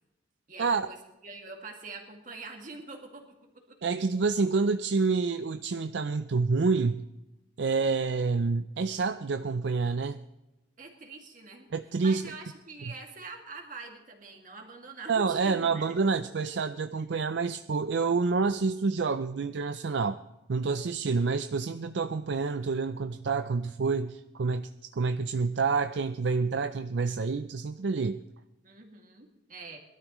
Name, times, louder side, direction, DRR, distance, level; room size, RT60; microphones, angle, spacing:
voice 1, 0.5-3.2 3.7-3.8 10.8-11.7 12.0-15.9 17.0-17.1 28.6-29.8, right 3 dB, 45° right, 2 dB, 2.2 m, -45 dB
voice 2, 3.8-7.0 7.6-10.2 11.7-12.3 15.1-20.2 20.5-28.2, right 4 dB, 65° right, 10 dB, 0.5 m, -28 dB
22.0 x 12.5 x 3.1 m, 0.97 s
head